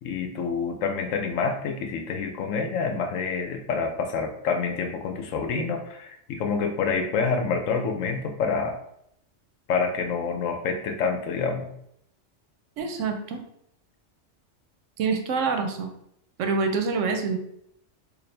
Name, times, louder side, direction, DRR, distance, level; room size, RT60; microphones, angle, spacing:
voice 1, 0.0-8.8 9.7-11.7, left 5 dB, 90° left, 6 dB, 1.0 m, -27 dB
voice 2, 12.8-13.4 15.0-15.9 16.4-17.4, right 4 dB, 80° right, 5 dB, 1.0 m, -26 dB
4.2 x 2.5 x 3.2 m, 0.74 s
omnidirectional pair, 1.3 m